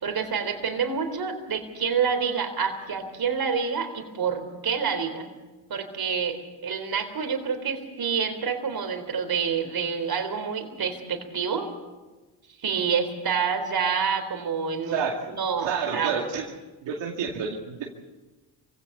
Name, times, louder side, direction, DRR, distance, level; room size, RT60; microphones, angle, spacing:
voice 1, 0.0-5.3 5.7-6.4 6.6-11.7 12.6-16.1, right 6 dB, 55° right, 7 dB, 3.9 m, -28 dB
voice 2, 14.9-15.4 15.6-16.4 16.8-17.9, right 6 dB, 80° right, -1 dB, 2.3 m, -29 dB
24.0 x 17.0 x 6.9 m, 1.2 s
supercardioid pair, 65°, 43 cm